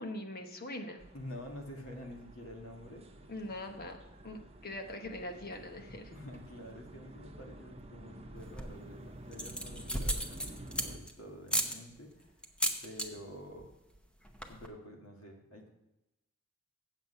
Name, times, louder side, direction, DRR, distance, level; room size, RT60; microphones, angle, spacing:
voice 1, 0.0-1.1 3.3-4.0 4.2-6.1, left 1 dB, 50° left, 5 dB, 1.1 m, -42 dB
sound 1, 1.0-11.0, right 1 dB, 30° right, 0.8 m, -51 dB
voice 2, 1.1-3.1 6.1-12.3 12.8-13.7 14.5-15.7, left 1 dB, 75° left, 1 dB, 1.8 m, -48 dB
sound 2, 8.4-8.9 9.3-11.1 11.5-11.7 12.4-13.1 13.4-13.7 13.9-14.0 14.2-14.7, equal, 5° left, 0.8 m, -34 dB
8.1 x 7.3 x 5.5 m, 0.94 s
head